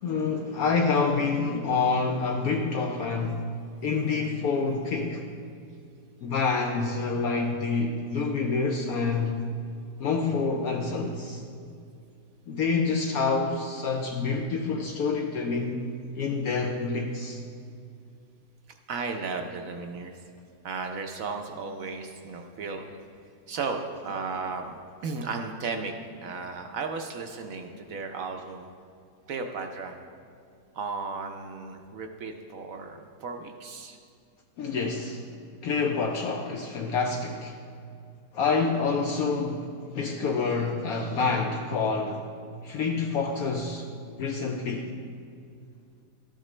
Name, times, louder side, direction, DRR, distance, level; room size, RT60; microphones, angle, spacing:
voice 1, 0.0-3.5 3.8-5.2 6.2-9.4 10.0-11.4 12.5-15.9 16.2-17.4 34.6-35.2 35.6-37.5 38.3-42.2 42.6-44.9, left 4 dB, 70° left, 2 dB, 1.0 m, -27 dB
voice 2, 18.7-20.2 20.6-22.8 23.5-25.9 26.2-28.7 29.3-30.0 30.7-34.0, right 4 dB, 65° right, 4 dB, 0.9 m, -35 dB
13.0 x 8.9 x 3.2 m, 2.3 s
omnidirectional pair, 1.8 m